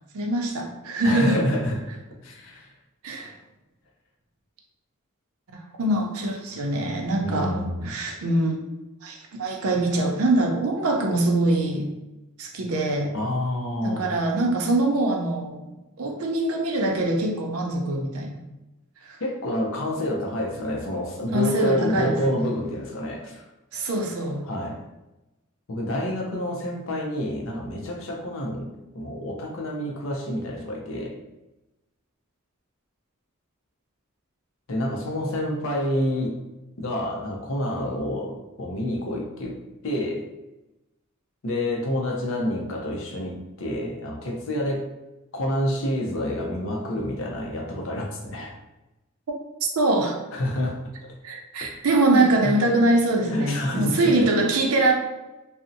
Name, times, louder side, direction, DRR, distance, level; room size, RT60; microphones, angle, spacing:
voice 1, 0.1-1.4 3.0-3.3 5.8-7.6 7.8-8.6 9.0-11.9 12.4-13.1 13.8-15.6 16.0-18.4 19.1-19.2 21.3-22.4 23.7-24.4 49.8-50.2 51.2-54.9, right 2 dB, 85° right, 2 dB, 0.5 m, -23 dB
voice 2, 1.0-1.8 2.2-2.7 7.2-7.9 13.1-14.1 19.2-23.4 24.4-24.8 25.7-31.1 34.7-36.4 36.8-39.6 39.8-40.2 41.4-44.9 45.3-48.5 50.3-50.8 51.6-51.7 52.1-52.5 53.2-54.3, left 1 dB, 65° left, 0 dB, 0.5 m, -28 dB
2.6 x 2.0 x 2.5 m, 1.0 s
head